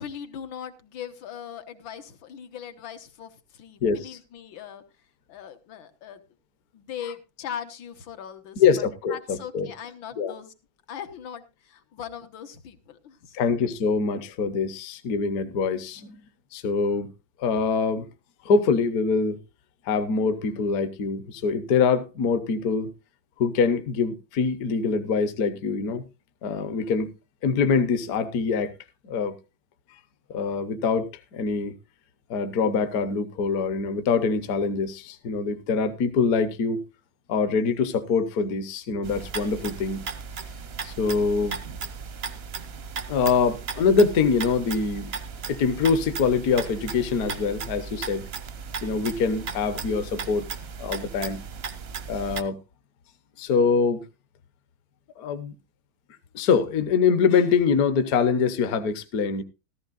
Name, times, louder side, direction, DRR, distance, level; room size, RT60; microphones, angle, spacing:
voice 1, 0.0-4.8 5.3-6.2 6.7-10.5 10.9-13.5, left 8 dB, 80° left, 1.9 m, -40 dB
voice 2, 3.8-4.2 8.6-9.7 10.2-10.3 13.3-16.2 16.5-17.1 17.4-18.1 18.4-19.4 19.8-22.9 23.4-26.0 26.4-27.1 27.4-28.7 29.0-29.3 30.3-31.7 32.3-36.8 37.3-40.0 40.8-41.6 43.1-45.1 45.5-48.2 48.8-50.5 50.8-51.4 52.1-52.6 53.4-54.0 55.2-55.5 56.3-59.4, left 5 dB, 60° left, 1.2 m, -24 dB
sound 1, 39.0-52.4, right 5 dB, 60° right, 0.6 m, -36 dB
14.5 x 14.0 x 2.4 m
omnidirectional pair, 2.1 m